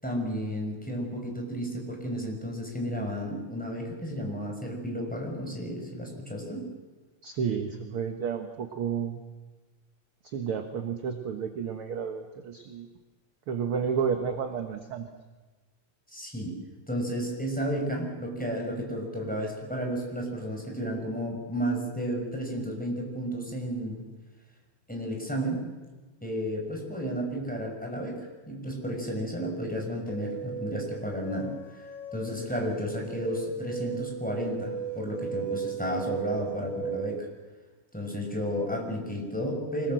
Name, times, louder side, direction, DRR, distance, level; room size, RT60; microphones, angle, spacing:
voice 1, 0.0-6.7 16.1-16.6 16.9-24.0 24.9-25.7 26.2-31.8 32.1-37.3 37.9-39.9, equal, 5° left, 0 dB, 5.8 m, -32 dB
voice 2, 7.2-9.2 10.2-12.9 13.5-15.1, right 6 dB, 55° right, 5 dB, 2.0 m, -31 dB
sound 1, 30.1-37.2, right 7 dB, 70° left, 6.8 m, -36 dB
25.5 x 20.5 x 7.8 m, 1.3 s
omnidirectional pair, 3.3 m